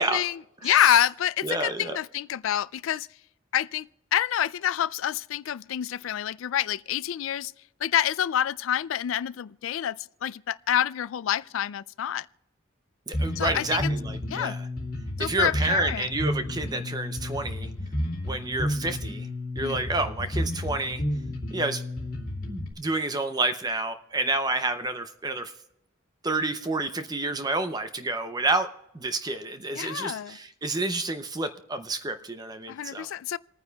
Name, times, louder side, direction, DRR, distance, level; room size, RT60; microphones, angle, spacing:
voice 1, 0.0-3.1 3.5-7.5 7.8-12.3 13.4-13.9 14.3-14.6 15.2-16.1 19.6-19.8 29.7-30.4 32.7-33.4, left 10 dB, 70° left, 0.3 m, -27 dB
voice 2, 1.4-2.0 13.1-14.6 15.2-17.7 18.2-19.3 19.6-21.0 21.5-21.8 22.5-25.5 26.2-28.7 28.9-33.1, right 2 dB, 20° right, 0.6 m, -29 dB
Bass guitar, 13.1-22.7, left 1 dB, 45° left, 2.5 m, -31 dB
28.5 x 9.6 x 2.3 m
head